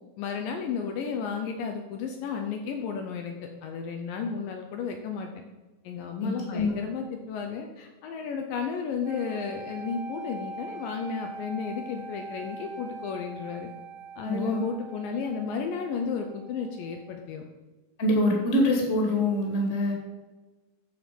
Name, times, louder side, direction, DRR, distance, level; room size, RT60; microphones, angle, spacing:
voice 1, 0.2-5.4 5.8-13.7 14.2-17.4, left 6 dB, 75° left, 3 dB, 2.3 m, -33 dB
voice 2, 6.2-6.7 14.2-14.6 18.0-19.9, left 1 dB, 25° left, -1 dB, 1.8 m, -25 dB
sound 1, 9.0-17.1, right 2 dB, 70° right, 2.5 m, -42 dB
13.5 x 4.6 x 5.2 m, 1.2 s
omnidirectional pair, 4.3 m